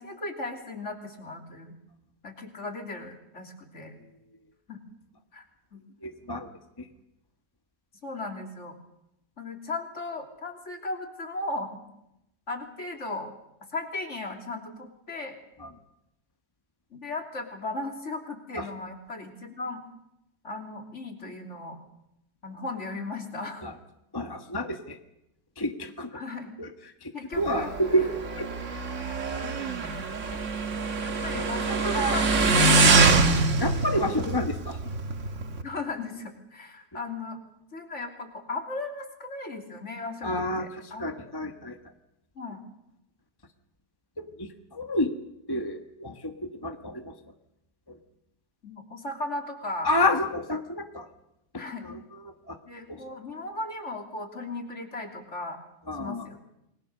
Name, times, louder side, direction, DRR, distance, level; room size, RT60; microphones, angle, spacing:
voice 1, 0.0-1.8 2.2-3.9 4.7-4.8 5.3-5.4 5.7-5.8 8.0-8.8 9.4-11.7 12.5-13.3 13.7-15.3 16.9-19.8 20.4-21.8 22.4-23.7 26.1-26.5 27.1-27.7 29.1-30.1 30.7-33.2 35.6-37.4 37.7-41.1 42.3-42.6 48.6-49.9 51.5-51.8 52.6-55.6 56.0-56.4, left 2 dB, 50° left, 4 dB, 3.4 m, -36 dB
voice 2, 6.0-6.5 6.8-6.9 15.6-15.7 18.6-18.7 23.6-23.7 24.1-25.0 25.6-26.1 26.6-26.7 27.0-28.1 28.4-28.5 31.3-31.5 33.6-34.8 40.2-41.8 44.2-45.1 45.5-47.1 47.9-48.0 49.8-51.1 51.8-52.0 52.5-52.6 52.9-53.0 55.9-56.3, left 1 dB, 15° left, 6 dB, 1.3 m, -29 dB
Motorcycle, 27.3-35.6, right 3 dB, 55° right, 1.7 m, -24 dB
29.0 x 21.5 x 6.7 m, 0.85 s
omnidirectional pair, 1.6 m